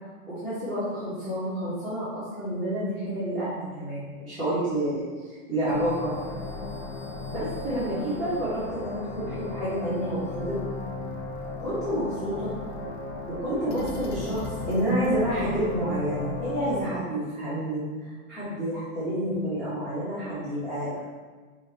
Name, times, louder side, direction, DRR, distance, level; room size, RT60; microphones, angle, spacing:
voice 1, 0.3-5.1 5.5-6.1 7.3-10.6 11.6-12.5 13.4-21.0, right 1 dB, ahead, -16 dB, 1.6 m, -29 dB
sound 1, 5.7-16.8, left 3 dB, 50° left, 0.9 m, -36 dB
7.0 x 3.4 x 4.1 m, 1.4 s
supercardioid pair, 170°, 43 cm